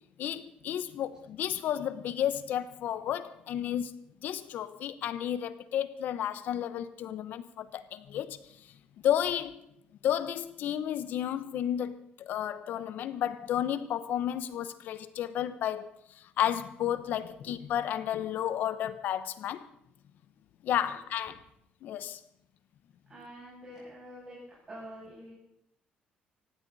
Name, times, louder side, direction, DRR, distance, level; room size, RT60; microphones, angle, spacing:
voice 1, 0.2-3.9 4.2-8.4 9.0-9.6 10.0-19.7 20.6-21.4 21.8-22.2, left 10 dB, 70° left, 1.0 m, -32 dB
voice 2, 23.1-24.4 24.7-25.3, equal, 25° right, 7.2 m, -46 dB
19.0 x 15.5 x 4.1 m
cardioid pair, 135°, 3 cm